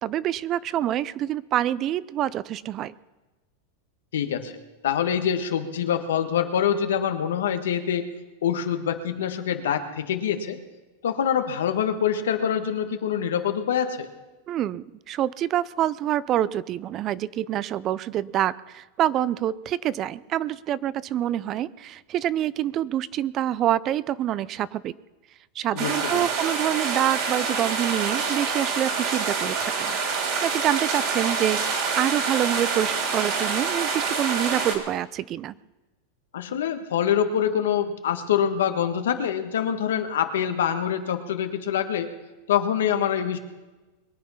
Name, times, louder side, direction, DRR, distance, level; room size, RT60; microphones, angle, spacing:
voice 1, 0.0-2.9 14.5-24.9 25.6-30.0 30.4-35.5, right 12 dB, 35° right, 20 dB, 0.4 m, -26 dB
voice 2, 4.1-4.5 4.8-8.1 8.4-10.6 11.0-14.1 25.7-26.3 36.3-42.1 42.5-43.4, left 8 dB, 90° left, 7 dB, 1.5 m, -25 dB
sound 1, 25.8-34.8, right 5 dB, 55° right, 3.3 m, -26 dB
22.0 x 8.5 x 5.7 m, 1.1 s
supercardioid pair, 135°, 0 cm